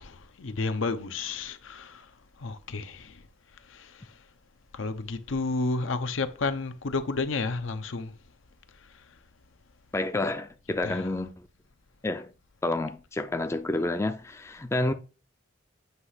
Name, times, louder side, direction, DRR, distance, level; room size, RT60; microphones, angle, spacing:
voice 1, 0.0-2.1 2.4-3.2 3.7-4.1 4.7-8.1 10.8-11.1, left 3 dB, 85° left, 0.7 m, -31 dB
voice 2, 9.9-11.3 12.0-12.3 12.6-14.9, left 2 dB, 15° left, 0.3 m, -29 dB
8.1 x 2.8 x 5.7 m
head